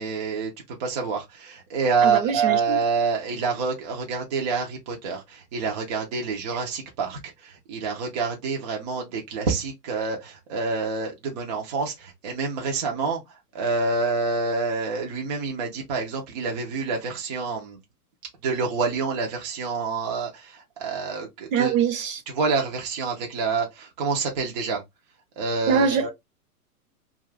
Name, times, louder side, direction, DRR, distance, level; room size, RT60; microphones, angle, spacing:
voice 1, 0.0-13.2 13.5-17.8 18.4-21.7 22.3-24.8 25.4-26.1, right 4 dB, 30° right, 0.5 m, -27 dB
voice 2, 2.0-2.8 21.5-22.2 25.7-26.1, right 7 dB, 55° right, 0.9 m, -23 dB
2.4 x 2.4 x 3.1 m
hypercardioid pair, 150°, 47 cm